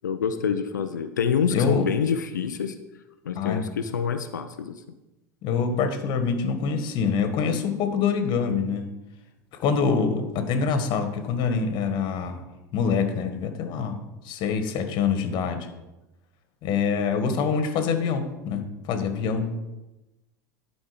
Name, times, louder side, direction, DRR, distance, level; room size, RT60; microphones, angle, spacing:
voice 1, 0.0-2.7 3.2-4.8, left 7 dB, 90° left, 9 dB, 0.6 m, -26 dB
voice 2, 1.5-1.8 3.3-3.7 5.4-8.9 9.6-12.4 12.7-14.0 14.2-15.7 16.6-19.6, left 5 dB, 50° left, 7 dB, 1.6 m, -25 dB
12.0 x 5.3 x 5.1 m, 1.0 s
hypercardioid pair, 85°, 10 cm